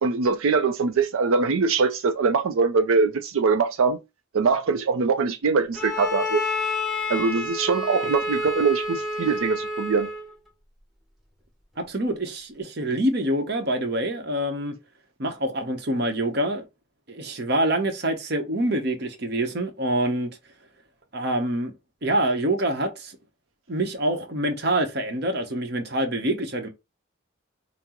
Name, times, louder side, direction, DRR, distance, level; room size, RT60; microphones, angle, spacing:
voice 1, 0.0-4.0 4.3-6.4 7.1-10.1, right 4 dB, 85° right, 0.4 m, -22 dB
Bowed string instrument, 5.7-10.3, left 2 dB, ahead, 0.9 m, -29 dB
voice 2, 11.9-14.7 15.2-16.7 17.1-20.3 21.1-21.7 22.0-23.1 23.7-26.7, right 1 dB, 50° right, 0.8 m, -26 dB
5.7 x 2.0 x 2.9 m
head